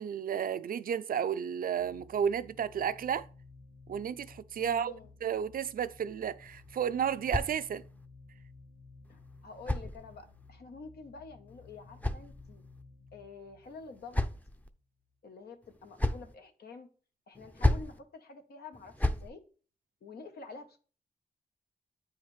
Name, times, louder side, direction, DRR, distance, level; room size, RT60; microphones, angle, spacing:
voice 1, 0.0-3.3 3.9-4.9 5.2-7.8, right 8 dB, 65° right, 0.4 m, -32 dB
sound 1, 1.8-15.1, left 3 dB, 65° left, 2.4 m, -56 dB
voice 2, 4.6-5.1 9.1-12.6 13.1-14.2 15.2-16.9 17.3-19.4 20.0-20.8, left 4 dB, 90° left, 1.0 m, -48 dB
sound 2, 6.4-8.1 9.1-10.5 11.5-12.8 13.6-14.7 15.6-16.4 17.4-18.0 18.7-19.3, left 1 dB, 10° left, 0.5 m, -34 dB
8.4 x 4.8 x 3.2 m
cardioid pair, 70°, 16 cm